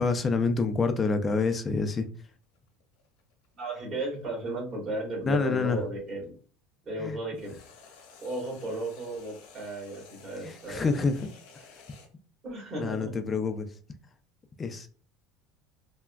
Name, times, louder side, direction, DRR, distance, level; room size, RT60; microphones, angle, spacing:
voice 1, 0.0-2.1 5.3-5.8 7.0-7.2 10.4-11.3 12.8-13.7 14.6-14.9, left 4 dB, 20° left, 8 dB, 0.3 m, -27 dB
sound 1, 1.3-6.2 7.3-12.1, left 5 dB, 90° left, 0.9 m, -54 dB
voice 2, 3.6-6.3 6.8-7.5 8.2-11.0 12.4-13.2, right 2 dB, 30° right, -3 dB, 1.4 m, -35 dB
3.4 x 2.1 x 2.2 m, 0.41 s
cardioid pair, 140°, 0 cm